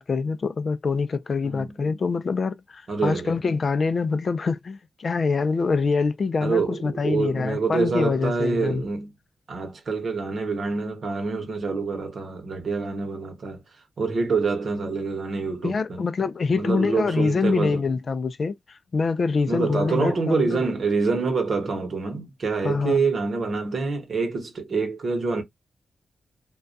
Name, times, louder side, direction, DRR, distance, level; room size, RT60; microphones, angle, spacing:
voice 1, 0.0-8.8 15.6-20.6 22.6-23.0, left 4 dB, 55° left, 0.3 m, -25 dB
voice 2, 1.4-1.7 2.9-3.4 6.4-9.1 9.5-13.6 14.0-16.0 16.5-17.8 19.5-25.4, right 4 dB, 65° right, 0.9 m, -26 dB
2.2 x 2.2 x 2.5 m
cardioid pair, 55°, 0 cm